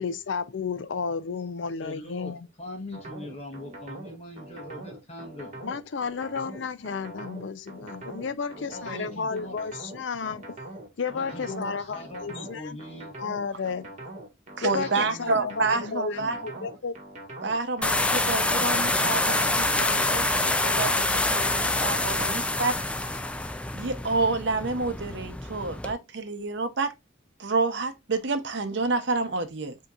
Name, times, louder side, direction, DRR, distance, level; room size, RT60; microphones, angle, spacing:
voice 1, 0.0-2.5 5.6-10.4 11.0-12.8 13.2-13.9 14.6-16.9, left 5 dB, 65° left, 0.5 m, -32 dB
voice 2, 1.8-5.6 8.6-9.6 11.1-13.1 14.7-15.5 16.2-16.5, left 1 dB, 30° left, 1.0 m, -41 dB
sound 1, 2.9-22.2, right 1 dB, 40° right, 1.5 m, -42 dB
voice 3, 14.6-16.4 17.4-20.3 20.6-22.8 23.7-26.9 27.4-29.8, right 3 dB, 60° right, 0.7 m, -28 dB
sound 2, 17.8-25.9, left 2 dB, 5° left, 0.3 m, -26 dB
7.9 x 2.8 x 2.4 m
head